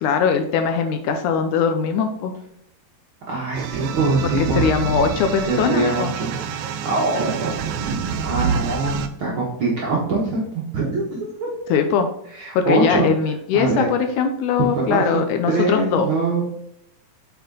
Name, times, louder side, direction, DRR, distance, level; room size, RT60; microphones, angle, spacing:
voice 1, 0.0-2.3 4.4-6.1 11.7-12.1 12.6-16.1, left 6 dB, 80° left, 6 dB, 1.9 m, -21 dB
voice 2, 3.3-4.7 5.5-7.5 7.8-11.5 12.3-13.1 13.5-13.9 14.7-16.4, right 3 dB, 60° right, -4 dB, 1.4 m, -23 dB
sound 1, 3.5-9.1, right 5 dB, 85° right, 1.7 m, -26 dB
7.9 x 4.7 x 3.8 m, 0.74 s
omnidirectional pair, 3.9 m